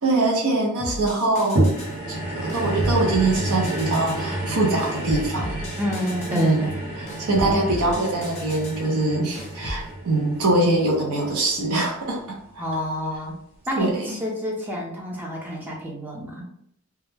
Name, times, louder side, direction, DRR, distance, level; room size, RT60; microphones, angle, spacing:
voice 1, 0.0-1.7 2.1-5.7 6.3-6.7 7.0-12.6 13.8-14.2, right 2 dB, 70° right, -1 dB, 0.6 m, -23 dB
sound 1, 0.8-2.0 2.5-4.3 4.8-6.5 7.1-8.8 9.4-9.9, equal, 30° left, 0.7 m, -36 dB
sound 2, 1.6-12.0 12.7-12.8, right 1 dB, 40° right, 1.0 m, -29 dB
voice 2, 5.8-6.9 7.3-7.7 12.6-13.3 13.7-16.5, left 1 dB, 10° right, -2 dB, 0.5 m, -29 dB
2.2 x 2.1 x 3.2 m, 0.72 s
head